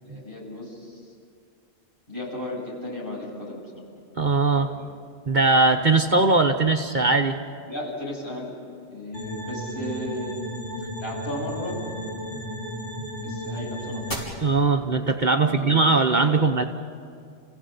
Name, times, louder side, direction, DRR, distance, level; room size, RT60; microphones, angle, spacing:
voice 1, 0.0-1.0 2.1-3.7 4.4-4.6 7.7-8.5 8.9-10.4 11.0-11.8 13.2-14.0 15.3-16.7, left 1 dB, 50° left, -5 dB, 7.8 m, -35 dB
voice 2, 4.2-4.7 5.3-7.4 14.4-16.6, right 3 dB, 45° right, 4 dB, 1.1 m, -20 dB
sound 1, 9.1-14.1, equal, 75° left, 5.3 m, -33 dB
29.5 x 16.5 x 8.2 m, 2.4 s
omnidirectional pair, 1.2 m